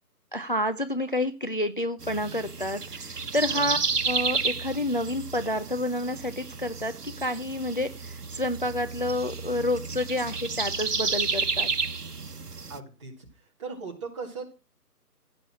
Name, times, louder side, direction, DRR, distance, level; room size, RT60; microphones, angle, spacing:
voice 1, 0.3-3.8 4.0-11.7, left 1 dB, 35° left, 11 dB, 0.6 m, -29 dB
sound 1, 2.0-12.8, right 4 dB, 75° right, 1.5 m, -31 dB
voice 2, 12.7-13.1 13.6-14.5, right 4 dB, 20° right, 0 dB, 2.3 m, -38 dB
16.0 x 6.8 x 6.2 m, 0.30 s
figure-of-eight pair, 165°, 47 cm